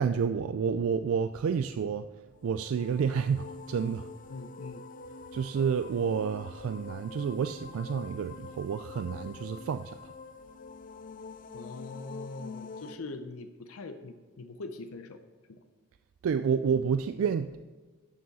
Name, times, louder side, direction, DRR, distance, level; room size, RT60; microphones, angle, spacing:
voice 1, 0.0-2.1 2.4-4.1 5.3-10.1 16.2-17.6, right 6 dB, 75° right, 11 dB, 0.3 m, -29 dB
sound 1, 2.3-13.0, left 4 dB, 40° left, 0.4 m, -45 dB
voice 2, 4.3-4.8 11.5-15.2 15.5-15.6, left 3 dB, 90° left, 8 dB, 0.6 m, -42 dB
12.5 x 7.0 x 4.1 m, 1.3 s
head